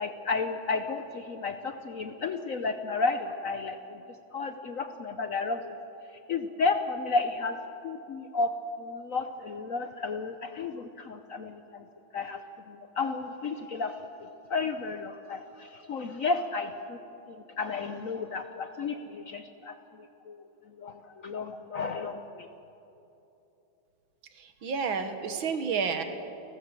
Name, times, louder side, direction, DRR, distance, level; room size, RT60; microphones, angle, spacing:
voice 1, 0.0-4.0 4.3-5.8 6.1-7.6 7.8-8.5 8.8-11.9 12.1-17.0 17.3-22.5, left 4 dB, 60° left, 8 dB, 0.9 m, -33 dB
voice 2, 24.4-26.0, right 6 dB, 75° right, 8 dB, 2.1 m, -30 dB
30.0 x 12.5 x 7.5 m, 3.0 s
omnidirectional pair, 2.2 m